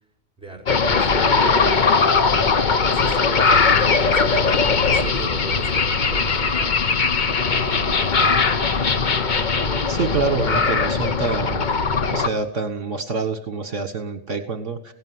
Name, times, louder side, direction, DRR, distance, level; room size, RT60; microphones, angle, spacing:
voice 1, 0.4-1.4 2.3-6.9 7.5-8.2, right 2 dB, 5° right, 3 dB, 4.2 m, -38 dB
sound 1, 0.7-12.3, left 4 dB, 40° left, 1.0 m, -19 dB
voice 2, 9.9-11.7 12.1-14.9, right 4 dB, 65° right, 9 dB, 1.7 m, -26 dB
18.0 x 17.0 x 9.5 m, 0.78 s
omnidirectional pair, 1.4 m